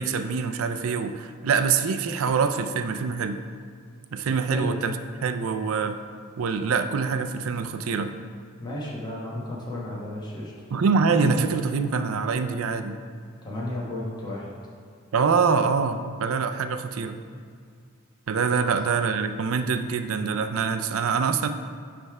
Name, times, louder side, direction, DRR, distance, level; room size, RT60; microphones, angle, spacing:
voice 1, 0.0-3.4 4.1-5.0 5.2-6.0 6.4-8.1 10.7-12.9 15.1-17.2 18.3-21.5, right 5 dB, 70° right, 8 dB, 0.4 m, -25 dB
voice 2, 8.6-10.5 13.4-14.5, left 1 dB, 20° left, -5 dB, 1.2 m, -33 dB
9.5 x 3.4 x 4.7 m, 2.1 s
head